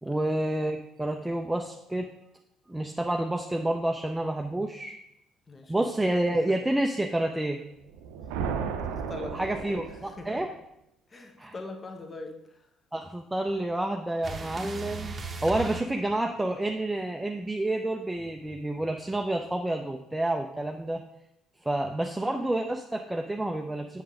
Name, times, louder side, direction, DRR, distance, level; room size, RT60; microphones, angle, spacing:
voice 1, 0.0-2.1 2.7-5.0 5.7-7.6 9.3-10.5 11.4-11.5 12.9-21.0 21.6-24.0, right 1 dB, 10° right, 4 dB, 0.5 m, -29 dB
voice 2, 5.5-5.9 9.1-10.3 11.1-12.7, left 2 dB, 30° left, 4 dB, 1.1 m, -42 dB
sound 1, 7.8-10.5, right 6 dB, 70° right, 0.6 m, -34 dB
sound 2, 14.2-16.7 18.1-19.4, right 3 dB, 30° right, 0.9 m, -39 dB
8.6 x 6.4 x 3.7 m, 0.84 s
figure-of-eight pair, 50°, 0 cm